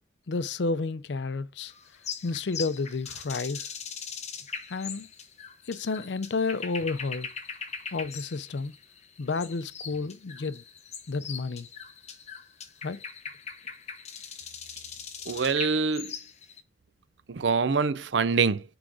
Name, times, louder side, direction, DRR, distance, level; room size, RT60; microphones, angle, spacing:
voice 1, 0.3-1.7 2.2-3.7 4.7-5.1 5.7-7.3 7.9-8.7 9.2-10.6 11.1-11.7 12.8-13.0, left 3 dB, 70° left, 0.5 m, -31 dB
sound 1, 1.6-16.6, left 6 dB, 40° left, 1.0 m, -41 dB
voice 2, 15.3-16.1 17.3-18.6, right 5 dB, 80° right, 0.6 m, -25 dB
6.2 x 4.9 x 4.9 m
head